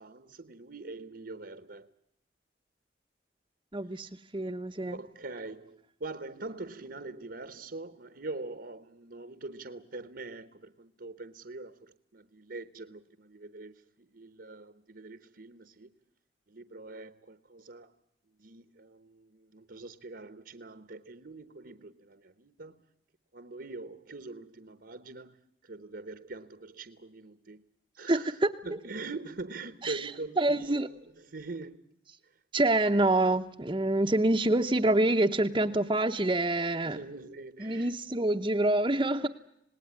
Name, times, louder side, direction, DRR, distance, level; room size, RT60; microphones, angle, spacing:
voice 1, 0.0-1.9 4.9-15.9 16.5-17.9 18.4-22.8 23.3-25.4 25.6-27.6 28.0-31.9 36.8-38.0, right 3 dB, 60° right, 1.1 m, -43 dB
voice 2, 3.7-5.0 28.1-28.5 29.8-30.1 30.4-30.9 32.5-37.0 37.6-39.3, right 2 dB, 25° right, 0.9 m, -26 dB
27.5 x 19.5 x 9.6 m
head